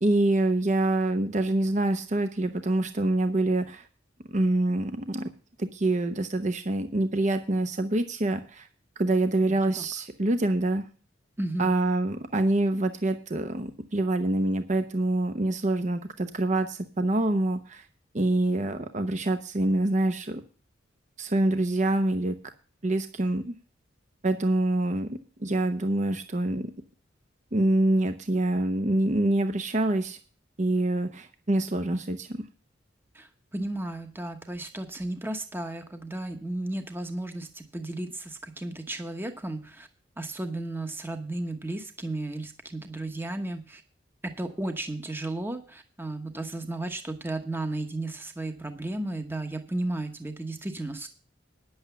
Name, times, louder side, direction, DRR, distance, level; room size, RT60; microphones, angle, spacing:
voice 1, 0.0-3.9 4.3-5.3 5.6-8.7 9.0-10.8 11.6-17.9 18.1-20.4 21.2-22.3 22.8-23.5 24.2-26.7 27.5-30.2 30.6-32.4, right 1 dB, 40° right, 8 dB, 0.9 m, -26 dB
voice 2, 9.5-9.8 11.4-11.7 33.1-39.9 40.2-43.8 44.2-51.1, right 2 dB, 10° right, 6 dB, 1.0 m, -34 dB
10.0 x 8.0 x 6.9 m, 0.38 s
head